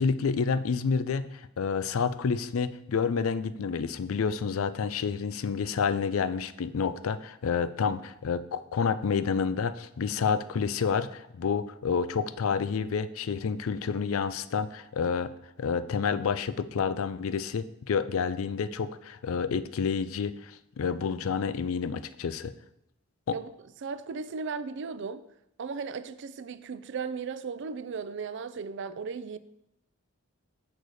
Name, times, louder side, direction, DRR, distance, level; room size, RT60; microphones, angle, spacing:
voice 1, 0.0-15.3 15.6-22.5 23.3-23.4, left 6 dB, 75° left, 0.4 m, -29 dB
voice 2, 23.8-25.3 25.6-29.4, right 5 dB, 55° right, 0.4 m, -36 dB
6.7 x 4.0 x 6.3 m
head